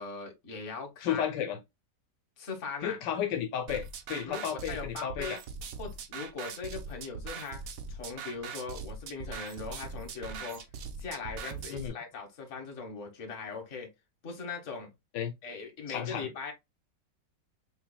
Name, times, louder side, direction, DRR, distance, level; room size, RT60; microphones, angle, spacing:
voice 1, 0.0-1.3 2.4-3.0 4.2-5.4 5.8-10.6 11.0-13.9 14.2-14.9 15.4-16.5, left 5 dB, 45° left, 1.5 m, -40 dB
voice 2, 1.0-1.6 2.8-5.4 11.7-11.9 15.1-15.3 15.9-16.3, left 9 dB, 80° left, 1.4 m, -33 dB
sound 1, 3.7-11.9, right 5 dB, 65° right, 1.0 m, -41 dB
6.5 x 3.2 x 2.2 m
omnidirectional pair, 1.9 m